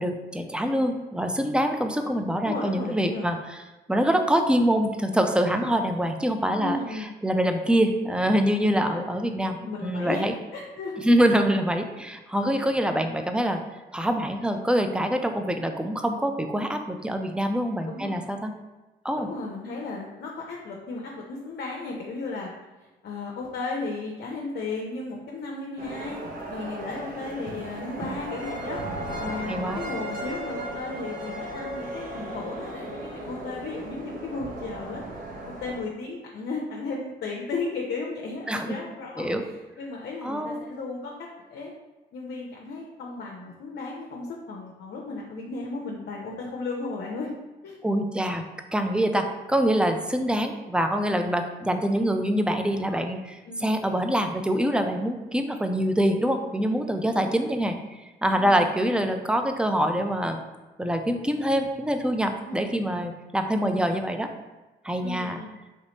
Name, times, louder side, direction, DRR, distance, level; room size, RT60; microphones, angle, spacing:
voice 1, 0.0-3.6 3.9-10.3 11.0-13.6 13.9-18.5 19.0-19.3 27.1-27.2 29.5-29.8 38.5-38.7 39.2-39.4 40.2-40.6 47.8-48.4 48.7-57.8 58.2-60.4 60.8-64.3 64.8-65.4, equal, 5° right, 5 dB, 0.4 m, -25 dB
voice 2, 2.4-3.3 6.6-7.1 8.7-9.0 9.3-10.3 10.5-11.0 12.5-12.6 17.8-18.2 19.2-22.5 23.0-26.2 26.5-35.0 35.5-41.1 41.5-41.7 42.1-47.3 47.6-47.8 53.5-53.7 57.1-57.4 58.4-58.7 62.4-62.7 63.8-63.9 65.0-65.5, left 3 dB, 55° left, -1 dB, 0.6 m, -35 dB
sound 1, 25.8-35.8, right 1 dB, 40° right, 0.8 m, -36 dB
3.3 x 3.0 x 2.8 m, 1.1 s
hypercardioid pair, 55°, 21 cm